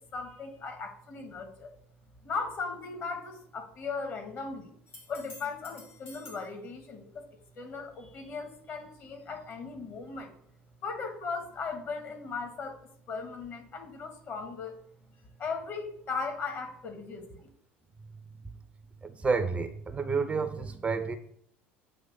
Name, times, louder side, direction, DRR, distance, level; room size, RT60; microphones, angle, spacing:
voice 1, 0.1-1.7 2.2-4.7 5.1-7.2 7.6-10.3 10.8-12.8 13.1-14.7 15.4-17.5, left 4 dB, 40° left, 6 dB, 1.4 m, -37 dB
sound 1, 4.9-6.5 10.2-10.3, left 2 dB, 80° left, 1.7 m, -50 dB
voice 2, 19.0-21.2, right 4 dB, 20° right, 10 dB, 0.6 m, -30 dB
7.6 x 3.1 x 5.4 m, 0.66 s
figure-of-eight pair, 65°, 6 cm